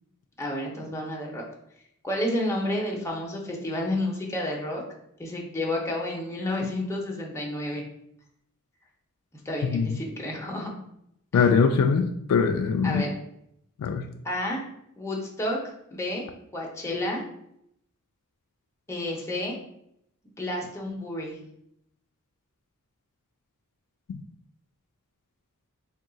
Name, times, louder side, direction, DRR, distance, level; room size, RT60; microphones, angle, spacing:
voice 1, 0.4-1.4 2.0-4.8 5.2-7.8 9.4-10.7 12.8-13.1 14.2-14.6 15.0-15.6 15.9-16.2 16.5-17.2 18.9-19.6 20.4-21.4, left 1 dB, 10° left, -2 dB, 0.7 m, -30 dB
voice 2, 9.6-10.0 11.3-13.1 13.8-14.1 24.1-24.2, left 5 dB, 75° left, 5 dB, 0.3 m, -22 dB
3.6 x 2.3 x 3.8 m, 0.75 s
head